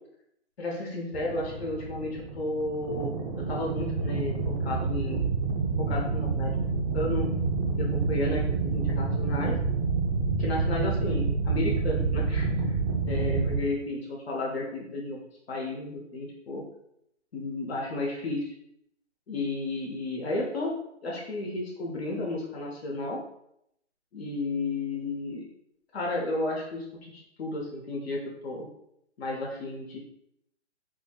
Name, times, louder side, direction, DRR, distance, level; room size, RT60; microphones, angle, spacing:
voice 1, 0.6-3.1 3.4-5.3 5.8-6.5 6.9-7.3 7.8-9.6 10.4-12.8 13.1-15.2 15.5-16.6 17.3-18.5 19.3-20.7 21.0-23.2 24.1-25.4 25.9-27.1 27.4-28.7 29.2-30.0, left 2 dB, 55° left, -2 dB, 0.9 m, -33 dB
sound 1, 1.1-13.6, right 4 dB, 25° right, 0.4 m, -28 dB
4.2 x 2.9 x 2.3 m, 0.77 s
hypercardioid pair, 150°, 36 cm